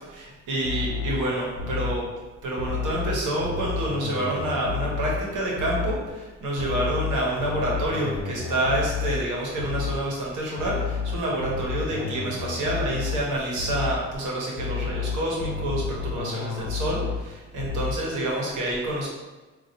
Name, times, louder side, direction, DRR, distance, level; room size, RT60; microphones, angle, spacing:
voice 1, 0.1-2.0 2.4-19.1, right 1 dB, 85° right, -3 dB, 1.1 m, -28 dB
sound 1, 0.6-2.1 2.6-5.3 5.6-6.1 6.6-10.1 10.6-13.3 13.6-14.1 14.6-17.3 17.6-18.1, left 6 dB, 70° left, 0.4 m, -31 dB
3.9 x 2.5 x 2.7 m, 1.2 s
cardioid pair, 90°, 30 cm